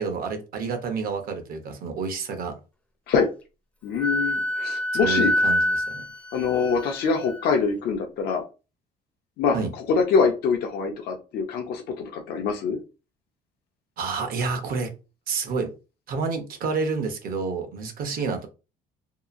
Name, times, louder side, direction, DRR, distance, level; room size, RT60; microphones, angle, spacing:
voice 1, 0.0-2.5 5.0-6.0 9.5-9.7 14.0-14.9 15.3-15.7 16.1-18.5, right 4 dB, 60° right, 6 dB, 0.8 m, -29 dB
voice 2, 3.8-5.3 6.3-8.4 9.4-12.8, left 5 dB, 70° left, 2 dB, 0.6 m, -24 dB
Wind instrument woodwind instrument, 4.0-7.4, left 1 dB, 10° left, 0.5 m, -26 dB
2.8 x 2.4 x 2.4 m, 0.31 s
cardioid pair, 110°, 17 cm